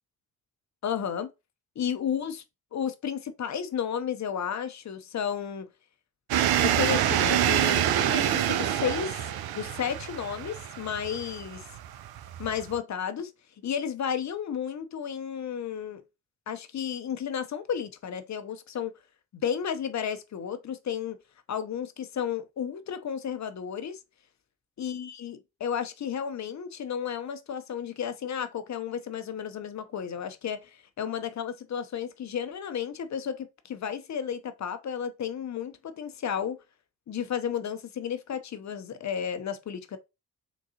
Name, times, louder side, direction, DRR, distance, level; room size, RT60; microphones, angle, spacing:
voice 1, 0.8-1.3 1.8-2.4 2.7-5.7 6.6-9.1 9.5-11.6 12.4-13.3 13.6-16.0 16.5-18.9 19.3-21.2 21.5-24.0 24.8-36.6 37.1-40.0, left 8 dB, 40° left, 0.7 m, -33 dB
sound 1, 6.3-12.8, right 11 dB, 60° right, 0.5 m, -26 dB
3.7 x 2.2 x 2.8 m
hypercardioid pair, 40°, 43 cm